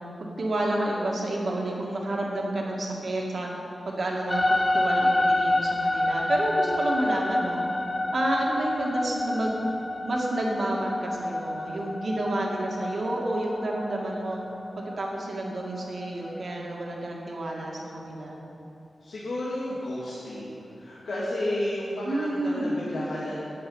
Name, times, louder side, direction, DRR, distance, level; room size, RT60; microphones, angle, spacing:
voice 1, 0.2-3.5 3.9-7.7 8.1-9.7 10.0-14.4 14.8-18.4 22.0-22.8, right 1 dB, 55° right, -2 dB, 2.0 m, -30 dB
sound 1, 4.3-16.6, left 1 dB, 20° left, 0.5 m, -28 dB
voice 2, 19.0-23.4, left 1 dB, 90° left, -7 dB, 2.0 m, -32 dB
9.9 x 7.9 x 8.6 m, 2.9 s
wide cardioid pair, 150°, 0 cm